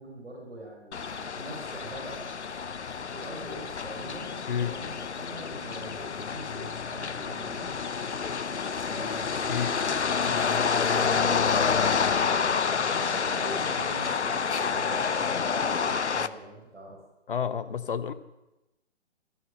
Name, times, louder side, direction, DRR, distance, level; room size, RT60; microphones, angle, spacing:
voice 1, 0.0-2.2 3.1-7.9 8.8-10.7 10.9-17.0, right 1 dB, 75° right, 0 dB, 4.7 m, -44 dB
sound 1, 0.9-16.3, left 6 dB, 75° left, 0.8 m, -28 dB
voice 2, 17.3-18.1, left 7 dB, 50° left, 13 dB, 1.0 m, -30 dB
14.0 x 14.0 x 6.5 m, 0.99 s
figure-of-eight pair, 135°, 34 cm